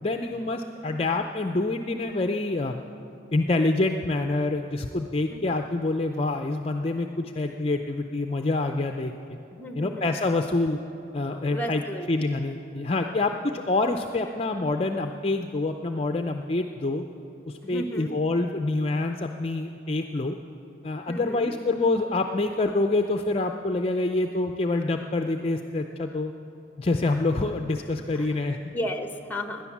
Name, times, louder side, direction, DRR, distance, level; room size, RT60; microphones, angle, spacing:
voice 1, 0.0-2.8 3.3-9.1 9.8-10.8 11.1-11.8 12.1-17.0 17.5-20.4 20.8-26.3 26.8-28.6, left 2 dB, 30° left, 5 dB, 0.4 m, -26 dB
voice 2, 9.5-10.1 11.5-12.2 17.6-18.1 21.1-21.5 28.1-28.3 28.7-29.7, equal, 10° left, 6 dB, 0.9 m, -34 dB
18.0 x 10.5 x 7.2 m, 2.8 s
head